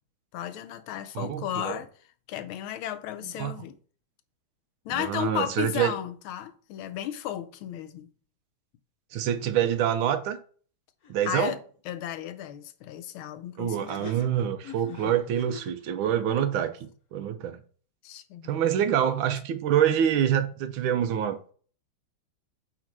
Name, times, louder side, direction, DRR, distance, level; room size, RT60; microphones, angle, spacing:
voice 1, 0.3-1.9 2.3-3.7 4.8-8.1 11.2-11.6 11.9-14.2 14.9-15.1 18.0-18.5, left 11 dB, 80° left, 1.5 m, -34 dB
voice 2, 1.1-1.8 3.2-3.5 4.9-5.9 9.1-10.4 11.1-11.5 13.6-17.6 18.4-21.5, right 9 dB, 75° right, 1.4 m, -26 dB
sound 1, 11.0-11.1 11.4-11.5 13.7-15.8, left 7 dB, 55° left, 1.1 m, -45 dB
4.9 x 4.3 x 5.9 m
omnidirectional pair, 2.3 m